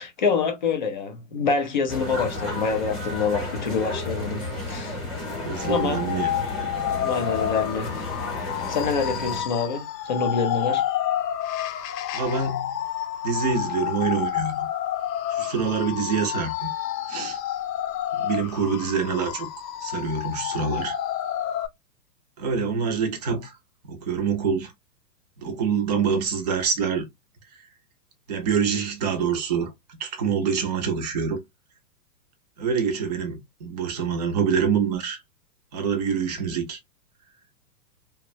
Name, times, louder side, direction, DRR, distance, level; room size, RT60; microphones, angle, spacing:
voice 1, 0.0-5.0 5.6-6.0 7.0-8.1 8.7-10.8, left 5 dB, 30° left, 0.4 m, -26 dB
sound 1, 1.9-9.4, left 2 dB, ahead, 0.9 m, -32 dB
voice 2, 5.4-6.3 12.1-12.8 13.2-14.7 15.3-16.7 17.1-17.4 18.1-19.5 19.8-21.0 22.4-23.6 23.8-24.7 25.4-27.1 28.3-31.4 32.6-35.2 35.7-36.8, right 6 dB, 25° right, 0.5 m, -26 dB
sound 2, 5.5-21.7, left 11 dB, 75° left, 0.7 m, -29 dB
2.9 x 2.1 x 2.5 m
hypercardioid pair, 145°, 50 cm